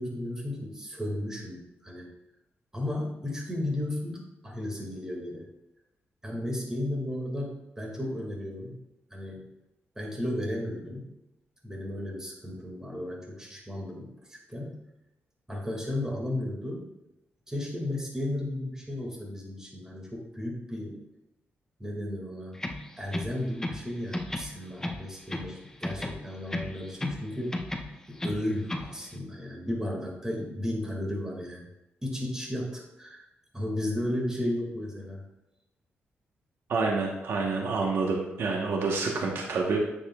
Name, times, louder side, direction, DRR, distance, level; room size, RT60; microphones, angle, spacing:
voice 1, 0.0-2.1 2.7-5.5 6.2-8.8 9.1-9.4 10.0-11.1 11.6-14.8 15.5-16.8 17.5-21.0 21.8-22.6 23.0-27.6 28.1-31.6 32.0-33.3 33.5-35.2, left 1 dB, 15° right, -2 dB, 2.2 m, -34 dB
sound 1, 22.5-23.9 24.1-25.6 25.8-27.2 27.5-28.9, left 1 dB, 15° left, 0.8 m, -34 dB
voice 2, 36.7-39.8, right 4 dB, 75° right, 0 dB, 1.2 m, -28 dB
8.9 x 6.9 x 2.4 m, 0.93 s
cardioid pair, 90°, 4 cm